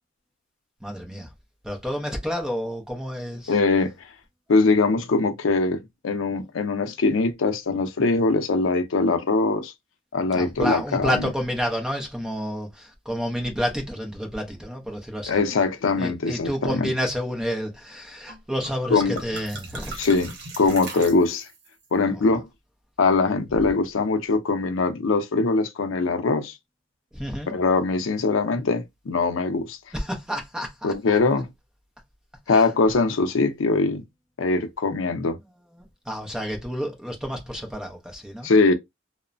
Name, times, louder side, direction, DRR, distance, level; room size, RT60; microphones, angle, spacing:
voice 1, 0.8-1.3 1.6-3.5 10.3-15.4 16.0-20.1 22.1-22.2 23.5-23.7 27.1-27.5 29.9-31.2 32.5-32.7 36.1-38.5, equal, 5° right, 0.6 m, -30 dB
voice 2, 3.5-3.9 4.5-9.7 10.1-11.3 15.3-16.9 18.9-19.1 20.0-21.5 21.9-22.5 23.0-26.5 27.5-29.8 30.8-31.5 32.5-34.0 34.4-35.4 38.4-38.7, left 3 dB, 85° left, 0.5 m, -22 dB
sound 1, 18.3-18.4 18.6-21.7, right 2 dB, 60° right, 0.9 m, -38 dB
3.0 x 2.1 x 2.4 m
head